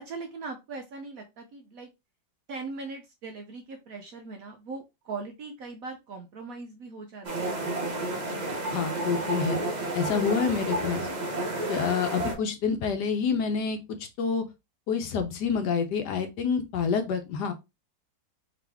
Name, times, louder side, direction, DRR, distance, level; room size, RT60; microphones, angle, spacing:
voice 1, 0.0-1.9 2.5-7.7, right 4 dB, 65° right, 3 dB, 0.9 m, -40 dB
sound 1, 7.2-12.3, right 2 dB, 40° right, 0.6 m, -31 dB
voice 2, 8.7-9.6 9.9-11.1 11.7-13.8 14.2-14.4 14.9-17.5, left 6 dB, 70° left, 7 dB, 1.2 m, -27 dB
3.8 x 2.9 x 3.4 m, 0.23 s
omnidirectional pair, 2.0 m